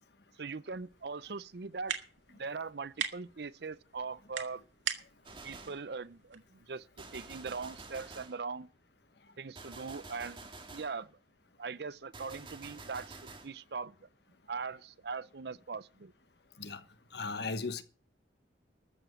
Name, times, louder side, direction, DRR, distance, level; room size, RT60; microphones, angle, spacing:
voice 1, 0.4-2.0 2.3-4.6 5.4-8.7 9.4-11.2 11.6-14.0 14.5-16.1, right 4 dB, 60° right, 0.6 m, -41 dB
sound 1, 0.7-7.4, right 8 dB, 90° right, 1.9 m, -43 dB
Gunshot gunfire, 5.2-5.9 7.0-8.4 9.5-11.0 12.1-13.5, right 3 dB, 25° right, 2.1 m, -49 dB
voice 2, 17.1-17.8, left 4 dB, 60° left, 1.3 m, -36 dB
13.5 x 7.0 x 8.1 m
head